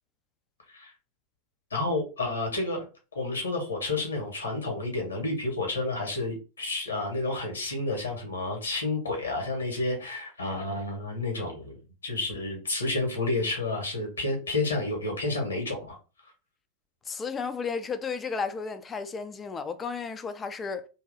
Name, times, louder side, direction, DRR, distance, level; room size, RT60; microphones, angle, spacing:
voice 1, 1.7-2.8 3.1-11.8 12.0-16.0, left 2 dB, 70° left, 1.4 m, -30 dB
voice 2, 17.1-20.9, left 5 dB, 20° left, 0.4 m, -33 dB
3.0 x 2.6 x 4.0 m
figure-of-eight pair, 90°, 0 cm